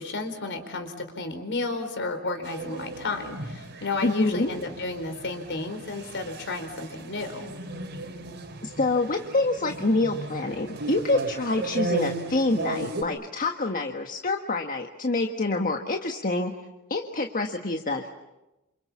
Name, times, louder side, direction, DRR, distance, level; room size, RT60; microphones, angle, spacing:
voice 1, 0.0-7.5, left 3 dB, 55° left, 8 dB, 4.3 m, -32 dB
sound 1, 2.4-13.0, right 3 dB, 50° right, 3.6 m, -36 dB
voice 2, 4.0-4.5 8.6-16.5 16.9-18.1, left 2 dB, 40° left, 4 dB, 1.5 m, -26 dB
28.5 x 27.5 x 7.3 m, 0.99 s
head